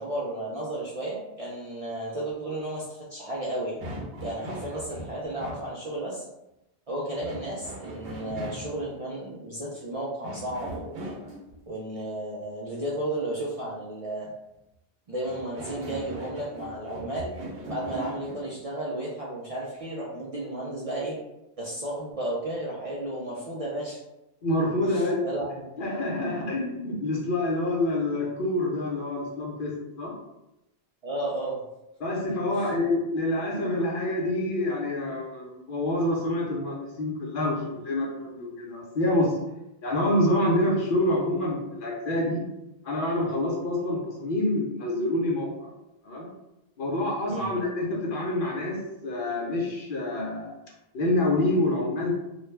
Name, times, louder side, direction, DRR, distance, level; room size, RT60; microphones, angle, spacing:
voice 1, 0.0-3.8 4.2-6.2 6.9-11.0 11.7-14.3 15.1-17.4 17.7-21.1 21.6-24.0 24.8-25.6 31.0-31.6 32.5-32.7 47.3-47.5, right 1 dB, 50° right, -5 dB, 0.4 m, -33 dB
sound 1, 3.8-5.7 7.2-8.9 10.2-11.6 15.2-18.5, right 1 dB, 75° right, 0.8 m, -39 dB
voice 2, 24.4-25.2 25.8-30.1 32.0-39.3 39.8-42.5 42.8-45.7 46.0-46.3 46.8-50.6 50.9-52.1, left 1 dB, 60° left, -2 dB, 0.8 m, -27 dB
2.4 x 2.1 x 3.1 m, 0.92 s
omnidirectional pair, 1.0 m